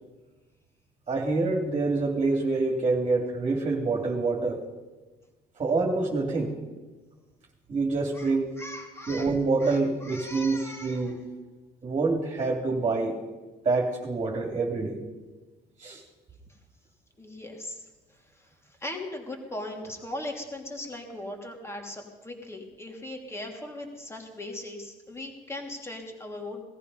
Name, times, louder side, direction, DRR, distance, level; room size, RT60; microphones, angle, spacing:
voice 1, 1.1-4.6 5.6-6.5 7.7-8.5 9.1-11.3 11.8-13.2 13.6-15.0 15.8-16.0, right 3 dB, 35° right, 0 dB, 2.6 m, -26 dB
voice 2, 8.6-9.3 9.6-11.1 17.2-17.8 18.4-18.5 18.8-26.6, left 1 dB, 15° left, 2 dB, 3.0 m, -39 dB
18.5 x 14.0 x 5.5 m, 1.2 s
cardioid pair, 110°, 17 cm